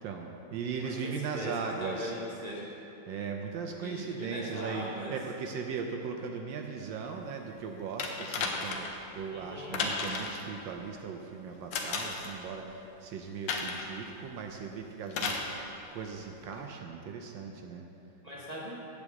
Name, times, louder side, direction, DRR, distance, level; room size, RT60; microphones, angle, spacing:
voice 1, 0.0-2.1 3.1-8.9 9.1-15.7 15.9-17.8, right 5 dB, 75° right, 3 dB, 1.3 m, -38 dB
voice 2, 0.8-2.7 3.8-5.2 9.3-9.8 18.2-18.8, equal, 35° right, -6 dB, 0.7 m, -40 dB
sound 1, 8.0-9.0 9.7-10.4 11.7-12.3 13.5-13.9 15.1-15.5 16.5-16.6, left 4 dB, 70° left, 1.5 m, -33 dB
8.6 x 4.9 x 7.5 m, 2.8 s
omnidirectional pair, 2.1 m